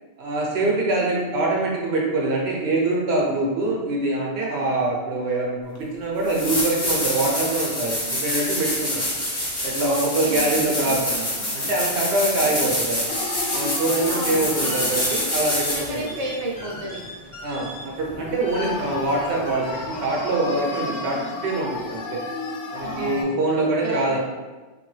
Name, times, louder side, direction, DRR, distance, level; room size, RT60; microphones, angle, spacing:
voice 1, 0.2-9.1 9.6-13.1 13.5-16.1 17.4-22.2 22.7-24.2, right 2 dB, 75° right, -2 dB, 1.0 m, -24 dB
sound 1, 5.7-5.8 6.2-16.0 18.8-18.9, left 1 dB, 20° left, 0.5 m, -26 dB
voice 2, 9.8-11.6 12.4-12.7 14.1-14.9 15.7-17.0 18.6-18.9 22.8-24.2, right 2 dB, 50° right, -1 dB, 0.5 m, -33 dB
sound 2, 13.1-17.1 17.5-17.6 17.9-23.2, left 3 dB, 85° left, 0.9 m, -34 dB
sound 3, 14.2-20.5, left 1 dB, 55° left, 0.7 m, -39 dB
2.9 x 2.6 x 3.1 m, 1.2 s
omnidirectional pair, 1.1 m